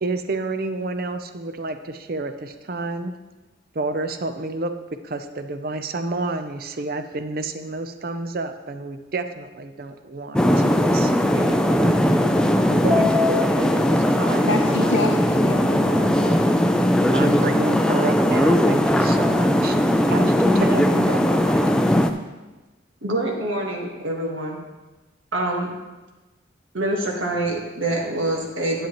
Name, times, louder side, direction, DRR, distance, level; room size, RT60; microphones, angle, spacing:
voice 1, 0.0-3.2 3.7-4.7 5.0-12.1 12.7-15.2 17.1-19.8 20.0-21.7, right 2 dB, 50° right, 8 dB, 0.5 m, -30 dB
sound 1, 10.3-22.1, left 1 dB, 5° left, 0.3 m, -19 dB
voice 2, 14.5-16.4, left 3 dB, 70° left, 2 dB, 0.6 m, -28 dB
voice 3, 23.0-24.6 25.3-25.7 26.7-28.9, right 1 dB, 85° right, -1 dB, 1.4 m, -25 dB
10.0 x 8.4 x 3.0 m, 1.1 s
head